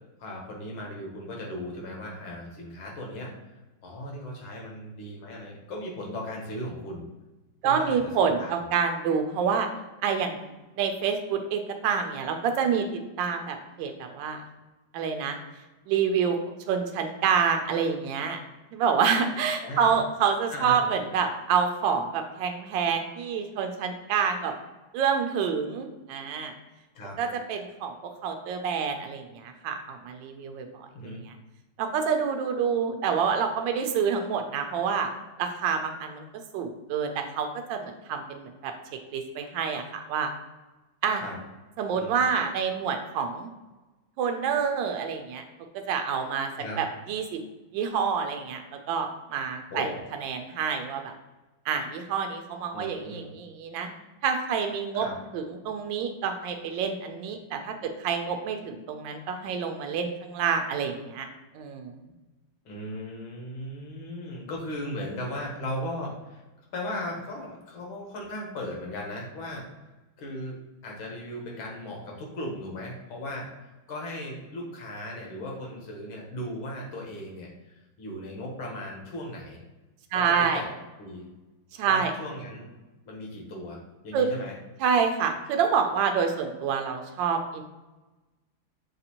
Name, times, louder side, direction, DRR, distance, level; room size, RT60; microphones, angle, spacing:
voice 1, 0.2-3.3 3.8-7.1 7.6-8.0 8.2-8.6 19.6-19.9 20.5-20.9 27.0-27.2 30.9-31.2 41.1-41.4 41.9-42.2 46.6-46.8 49.7-50.0 52.7-53.3 54.9-55.2 62.7-66.4 66.7-69.7 70.2-73.5 73.9-79.6 80.1-80.7 81.0-81.3 81.9-82.7 83.1-84.5, left 1 dB, 85° left, -1 dB, 1.9 m, -37 dB
voice 2, 7.6-9.7 10.0-10.5 10.8-14.4 14.9-15.4 15.9-16.4 16.7-18.4 18.7-24.5 24.9-26.5 27.2-31.4 31.8-35.1 35.4-36.3 36.5-38.7 39.1-40.3 41.0-41.2 41.8-43.5 44.2-45.4 45.7-46.5 46.8-47.4 47.7-48.6 48.9-49.9 50.2-51.1 51.7-53.9 54.2-55.1 55.3-61.3 61.5-62.0 80.1-80.6 81.8-82.1 84.1-84.2 84.8-87.6, right 6 dB, 75° right, 5 dB, 1.2 m, -27 dB
6.6 x 2.5 x 2.8 m, 1.1 s
omnidirectional pair, 2.2 m